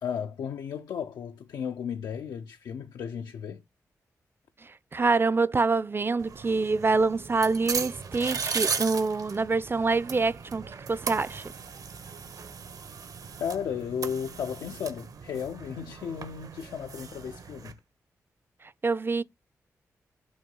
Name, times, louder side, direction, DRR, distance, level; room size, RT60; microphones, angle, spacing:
voice 1, 0.0-3.6 13.4-17.8, left 7 dB, 85° left, 0.6 m, -34 dB
voice 2, 4.6-11.5 18.8-19.2, right 3 dB, 35° right, 0.5 m, -26 dB
sound 1, 6.2-17.7, right 5 dB, 65° right, 1.1 m, -37 dB
6.3 x 2.8 x 5.4 m
supercardioid pair, 45°, 6 cm